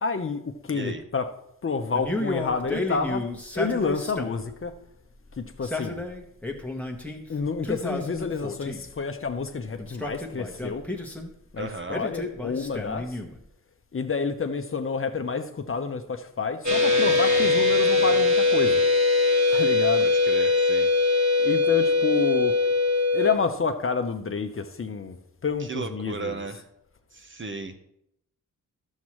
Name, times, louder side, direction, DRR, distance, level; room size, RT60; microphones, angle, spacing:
voice 1, 0.0-1.3 1.6-3.2 3.5-4.7 5.4-6.0 7.3-10.8 11.5-13.2 13.9-18.8 19.5-20.1 21.4-22.6 23.1-25.2 25.4-26.5, left 5 dB, 40° left, 0.8 m, -29 dB
Male speech man speaking, 1.9-4.5 5.5-7.2 7.6-8.9 9.8-11.3 11.9-13.4, left 2 dB, 5° left, 1.3 m, -32 dB
voice 2, 11.6-12.0 19.7-20.9 25.6-26.7 27.1-27.7, right 4 dB, 35° right, 1.0 m, -36 dB
sound 1, 16.6-23.3, left 3 dB, 55° right, 2.5 m, -21 dB
11.5 x 7.3 x 3.1 m
cardioid pair, 70°, 33 cm